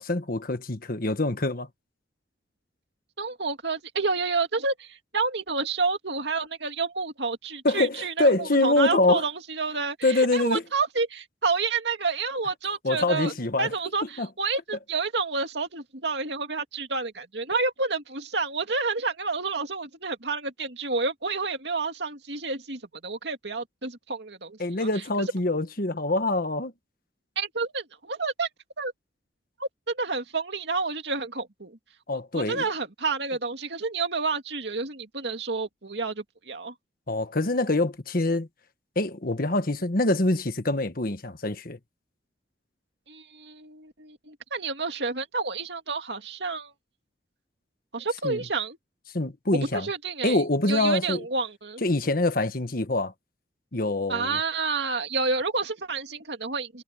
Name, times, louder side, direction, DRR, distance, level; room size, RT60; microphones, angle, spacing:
voice 1, 0.0-1.7 7.6-9.2 10.0-10.6 12.8-13.7 14.2-14.3 24.6-26.7 32.1-32.6 37.1-38.5 38.9-41.8 48.2-48.4 49.1-49.9 50.2-51.2 51.8-53.1 53.7-54.4, left 2 dB, 50° left, 1.4 m, -25 dB
voice 2, 3.2-13.3 13.6-24.9 27.4-28.5 28.8-28.9 29.6-31.8 32.3-36.7 43.1-46.7 47.9-48.8 49.7-51.8 54.1-56.8, right 4 dB, 65° right, 2.5 m, -29 dB
head